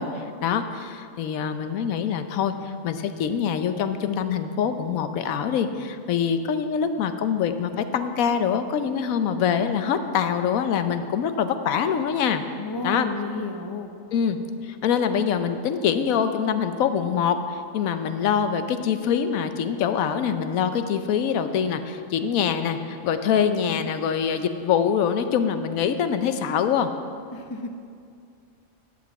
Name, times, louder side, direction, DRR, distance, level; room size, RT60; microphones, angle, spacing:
voice 1, 0.0-12.4 12.8-13.1 14.1-14.4 14.6-26.9, left 7 dB, 90° left, 9 dB, 1.1 m, -24 dB
voice 2, 12.6-13.9 27.3-27.7, left 3 dB, 30° left, 5 dB, 0.4 m, -32 dB
11.0 x 5.2 x 8.1 m, 2.3 s
omnidirectional pair, 1.4 m